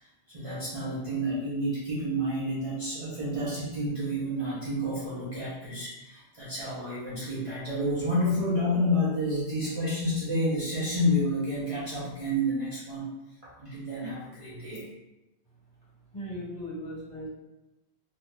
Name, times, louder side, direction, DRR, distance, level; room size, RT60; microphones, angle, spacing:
voice 1, 0.3-13.1 13.4-14.8, equal, 40° right, -9 dB, 0.6 m, -29 dB
voice 2, 16.1-17.3, equal, 40° left, -8 dB, 1.2 m, -37 dB
2.6 x 2.2 x 3.2 m, 0.97 s
omnidirectional pair, 1.1 m